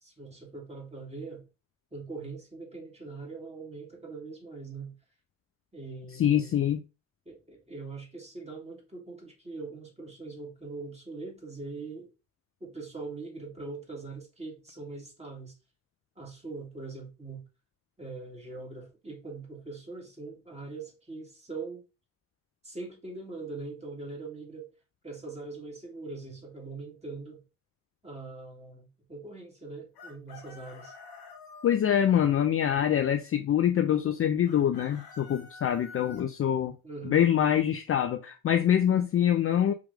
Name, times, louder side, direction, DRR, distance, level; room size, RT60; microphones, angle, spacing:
voice 1, 0.0-1.4 1.9-4.9 5.7-6.6 7.3-12.1 12.6-15.5 16.2-17.4 18.0-21.8 22.6-24.7 25.0-27.4 28.0-30.9 36.8-37.2, right 3 dB, 15° right, 2.5 m, -42 dB
voice 2, 6.1-6.8 31.6-36.7 37.0-39.7, left 10 dB, 30° left, 0.5 m, -25 dB
Chicken rooster, 29.9-31.8 34.5-36.2, left 4 dB, 55° left, 1.9 m, -48 dB
4.7 x 3.0 x 3.5 m
hypercardioid pair, 60°, 44 cm